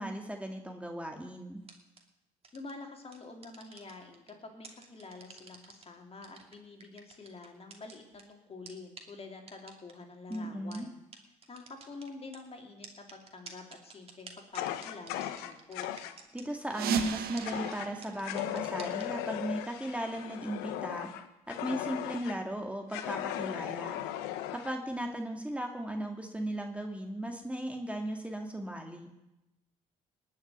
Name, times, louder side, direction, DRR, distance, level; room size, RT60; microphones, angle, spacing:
voice 1, 0.0-1.6 10.3-10.9 16.3-21.1 21.5-24.0 24.5-29.1, right 1 dB, 10° right, 3 dB, 2.1 m, -37 dB
sound 1, 1.6-2.0 2.4-2.7 3.1-4.3 4.6-5.8 6.2-8.2 8.7-8.8 9.0-9.1 9.5-9.9 10.3-10.4 10.7-10.8 11.1-11.2 11.4-12.4 12.8-16.4 16.7-17.1 17.4-17.5 17.7-17.8 18.0-19.0, right 4 dB, 40° right, 2.6 m, -49 dB
voice 2, 2.5-10.9 11.5-15.9, left 3 dB, 40° left, 3 dB, 3.1 m, -47 dB
Fire, 14.5-16.2 17.4-17.9 18.2-22.4 22.9-24.8, left 12 dB, 85° left, 0.9 m, -37 dB
sound 2, 16.7-19.3, right 8 dB, 70° right, 1.3 m, -36 dB
19.0 x 6.5 x 9.4 m, 0.93 s
supercardioid pair, 70°, 16 cm